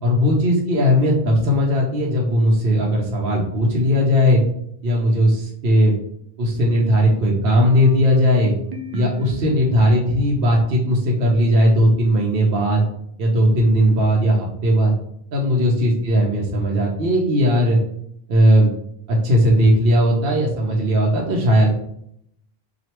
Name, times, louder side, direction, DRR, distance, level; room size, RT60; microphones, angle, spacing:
voice 1, 0.0-4.4 4.8-5.9 6.4-8.5 8.9-12.9 13.2-14.9 15.3-17.8 18.3-18.7 19.1-21.7, equal, 70° right, -2 dB, 0.9 m, -17 dB
sound 1, 6.5-10.2, left 3 dB, 50° right, 0.6 m, -35 dB
3.0 x 2.4 x 4.3 m, 0.72 s
omnidirectional pair, 1.1 m